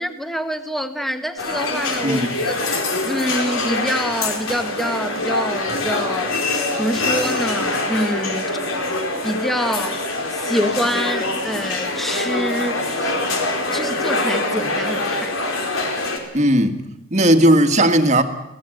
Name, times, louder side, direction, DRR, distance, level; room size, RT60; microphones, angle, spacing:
voice 1, 0.0-2.8 3.0-8.6 9.2-10.0 10.3-13.1 13.7-15.4, equal, ahead, 7 dB, 1.5 m, -26 dB
sound 1, 1.4-16.2, left 2 dB, 75° left, 4.4 m, -24 dB
voice 2, 2.0-2.3 16.3-16.8 17.1-18.2, right 1 dB, 35° right, 6 dB, 1.8 m, -16 dB
26.5 x 18.0 x 7.9 m, 0.88 s
head